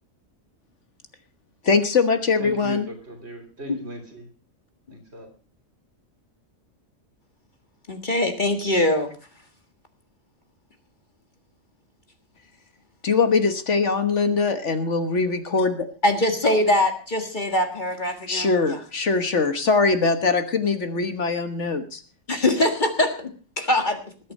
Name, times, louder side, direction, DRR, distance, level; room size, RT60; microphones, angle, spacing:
voice 1, 1.6-2.9 13.0-15.9 18.3-22.0 22.3-22.4, left 4 dB, 60° left, 1.6 m, -22 dB
voice 2, 2.4-4.3 5.1-5.3, right 2 dB, 50° right, 3.6 m, -38 dB
voice 3, 7.9-9.1 16.0-18.8 22.3-24.0, left 1 dB, 35° left, 1.8 m, -23 dB
20.0 x 8.5 x 5.4 m
omnidirectional pair, 1.4 m